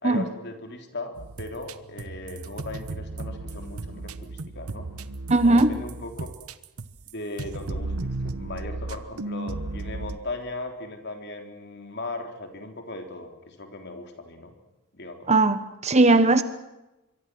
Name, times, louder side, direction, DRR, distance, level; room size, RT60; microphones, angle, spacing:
voice 1, 0.0-4.9 5.4-6.3 7.1-14.5 14.9-15.3, left 2 dB, 50° left, 4 dB, 3.4 m, -38 dB
sound 1, 1.2-7.1 7.4-10.2, right 2 dB, 80° right, 1.1 m, -35 dB
voice 2, 5.3-5.7 15.3-16.4, right 2 dB, 30° right, 11 dB, 1.1 m, -19 dB
25.5 x 23.5 x 6.2 m, 0.98 s
head